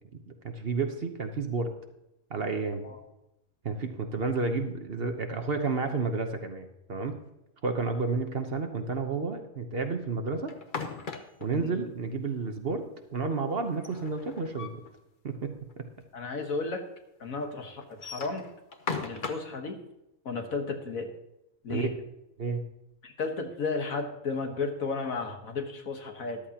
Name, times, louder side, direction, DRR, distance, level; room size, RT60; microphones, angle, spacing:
voice 1, 0.4-1.7 2.3-2.8 3.6-7.2 7.6-10.5 11.4-12.9 13.1-14.8 15.2-15.5 15.8-15.9 21.7-21.9 22.4-22.6, right 4 dB, 45° right, 6 dB, 1.1 m, -31 dB
sound 1, 10.5-11.6 13.7-14.9 15.3-15.4 15.7-15.8 16.5-16.6 17.8-19.6, left 4 dB, 40° left, 1.0 m, -37 dB
voice 2, 16.1-16.8 17.2-18.4 19.0-19.8 20.3-21.1 21.6-21.9 23.0-26.4, left 4 dB, 75° left, 4 dB, 1.8 m, -33 dB
13.5 x 11.5 x 2.9 m, 0.88 s
omnidirectional pair, 1.5 m